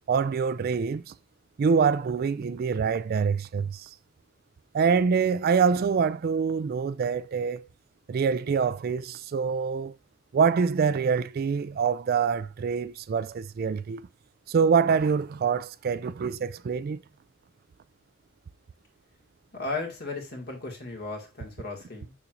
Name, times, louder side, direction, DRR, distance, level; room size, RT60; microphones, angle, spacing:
voice 1, 0.1-1.1 1.6-3.9 4.7-7.7 8.1-10.0 10.3-14.0 14.5-17.0, right 6 dB, 45° right, 0.3 m, -25 dB
voice 2, 19.5-22.1, left 3 dB, 50° left, 2.1 m, -35 dB
6.9 x 6.1 x 2.5 m
head